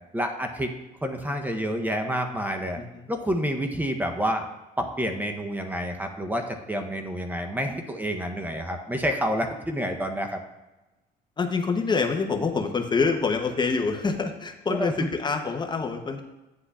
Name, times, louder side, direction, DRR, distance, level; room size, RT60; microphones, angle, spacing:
voice 1, 0.1-0.7 1.0-2.8 3.1-4.4 4.8-10.4 14.7-14.9, equal, 10° right, 5 dB, 0.7 m, -28 dB
voice 2, 2.8-3.1 11.4-16.2, left 4 dB, 25° left, 5 dB, 0.7 m, -26 dB
9.6 x 7.8 x 2.4 m, 1.0 s
cardioid pair, 110°, 17 cm